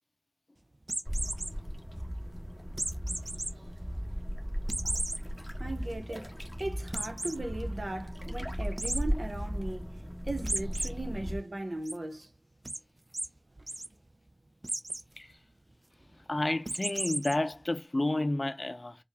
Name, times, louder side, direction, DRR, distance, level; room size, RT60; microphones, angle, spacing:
sound 1, 0.8-1.5 2.8-3.5 3.9-4.0 4.7-5.2 5.7-5.8 6.1-6.2 6.9-7.4 8.8-9.0 10.5-10.9 11.3-11.9 12.7-12.8 13.1-13.3 13.6-13.9 14.6-15.0 16.7-17.3, right 1 dB, 50° right, 0.3 m, -34 dB
sound 2, 1.0-11.4, equal, 5° right, 1.2 m, -36 dB
voice 1, 5.6-9.9 10.3-12.3, right 2 dB, 80° right, 0.9 m, -38 dB
voice 2, 16.3-19.0, left 2 dB, 50° left, 0.5 m, -30 dB
4.5 x 2.3 x 3.4 m
wide cardioid pair, 50°, 0 cm